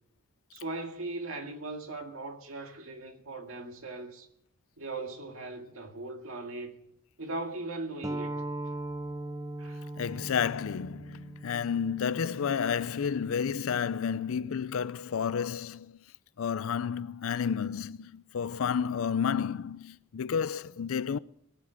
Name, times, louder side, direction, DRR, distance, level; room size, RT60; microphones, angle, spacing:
voice 1, 0.5-4.3 4.8-6.8 7.2-8.4 9.6-9.8, right 2 dB, 75° right, 2.0 m, -39 dB
sound 1, 8.0-13.2, right 1 dB, 15° right, 0.7 m, -39 dB
voice 2, 10.0-16.0 16.4-21.2, left 7 dB, 75° left, 0.4 m, -31 dB
21.5 x 7.4 x 6.3 m
head